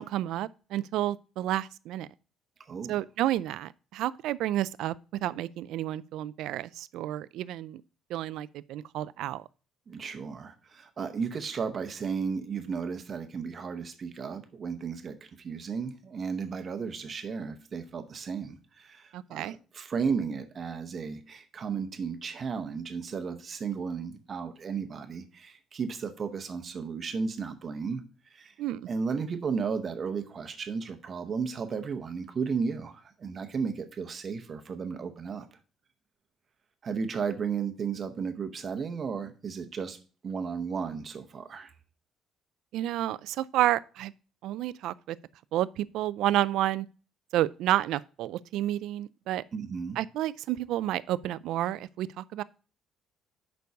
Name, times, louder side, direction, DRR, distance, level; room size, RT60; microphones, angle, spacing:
voice 1, 0.0-2.1 2.9-5.0 5.2-7.8 8.1-9.4 19.1-19.5 28.6-28.9 42.7-44.1 44.4-45.2 45.5-46.9 47.3-49.4 50.0-52.4, right 13 dB, 70° right, 0.3 m, -30 dB
voice 2, 2.6-3.0 9.9-28.6 28.9-35.5 36.8-40.0 40.2-41.7 49.5-50.0, right 5 dB, 30° right, 0.8 m, -34 dB
6.9 x 5.3 x 4.6 m
cardioid pair, 170°, 0 cm